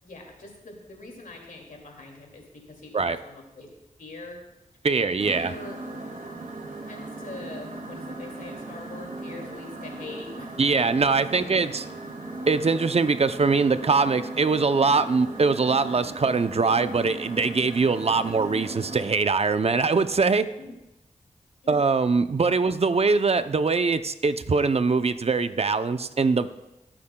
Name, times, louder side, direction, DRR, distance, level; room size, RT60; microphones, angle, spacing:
voice 1, 0.0-3.7 4.0-4.4 5.0-5.8 6.9-11.0 11.4-11.7 18.3-18.4 20.6-20.7 21.6-21.8, left 2 dB, 75° left, 1 dB, 2.4 m, -43 dB
voice 2, 4.8-5.5 10.6-11.8 12.5-20.5 21.7-26.5, right 4 dB, 50° right, 11 dB, 0.6 m, -22 dB
sound 1, 5.2-19.0, right 2 dB, 80° right, 2.3 m, -38 dB
20.0 x 8.7 x 2.3 m, 0.94 s
cardioid pair, 50°, 14 cm